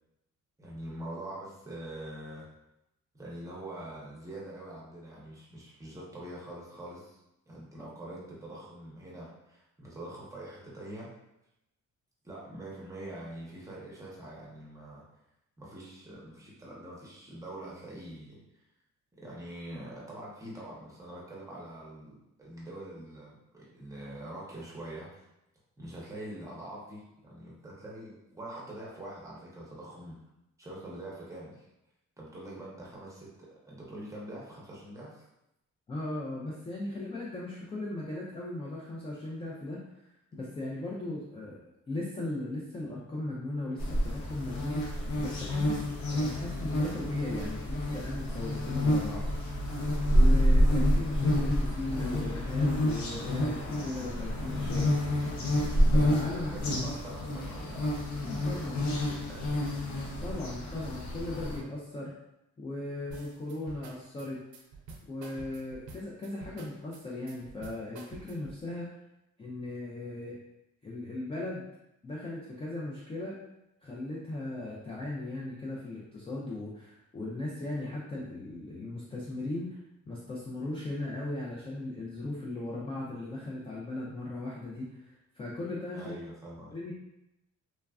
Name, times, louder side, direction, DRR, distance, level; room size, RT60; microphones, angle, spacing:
voice 1, 0.6-2.4 3.1-7.2 7.5-11.1 12.2-15.0 15.6-18.6 19.2-22.1 22.4-25.1 25.8-30.2 30.6-31.7 32.2-35.3 56.3-58.1 58.4-59.5 86.0-86.7, right 1 dB, 10° right, -5 dB, 0.7 m, -44 dB
voice 2, 35.9-40.1 40.3-41.6 41.9-45.8 46.1-49.3 50.1-54.9 55.9-56.5 58.2-58.8 60.2-62.1 62.6-64.4 65.1-68.9 69.4-70.4 70.8-71.6 72.0-73.4 73.8-79.8 80.1-86.1 86.7-86.9, left 2 dB, 20° left, -5 dB, 0.3 m, -37 dB
sound 1, 43.8-61.6, equal, 70° left, 0.6 m, -28 dB
sound 2, 63.1-68.6, right 4 dB, 80° right, 0.5 m, -48 dB
3.1 x 2.3 x 2.3 m, 0.87 s
cardioid pair, 150°, 30 cm